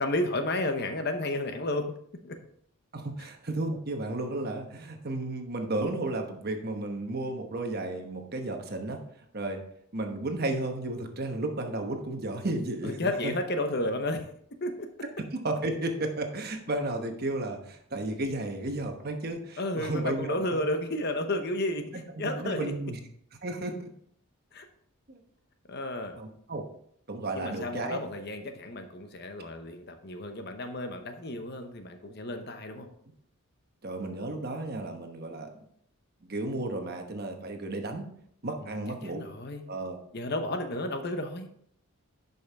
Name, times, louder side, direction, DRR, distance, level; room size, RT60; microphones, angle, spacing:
voice 1, 0.0-2.0 2.2-2.4 12.8-14.3 14.6-14.9 19.6-22.7 24.5-24.6 25.7-26.1 27.3-32.9 39.0-39.6 40.1-41.5, left 1 dB, 45° left, 6 dB, 0.9 m, -32 dB
voice 2, 2.9-9.0 9.3-9.6 9.9-13.3 15.3-20.4 21.9-23.0 23.4-23.9 25.1-25.2 26.2-26.6 27.1-28.0 33.8-35.5 36.2-38.0 38.4-39.3 39.7-40.0, right 2 dB, 45° right, 4 dB, 1.0 m, -33 dB
11.0 x 5.5 x 3.5 m, 0.67 s
head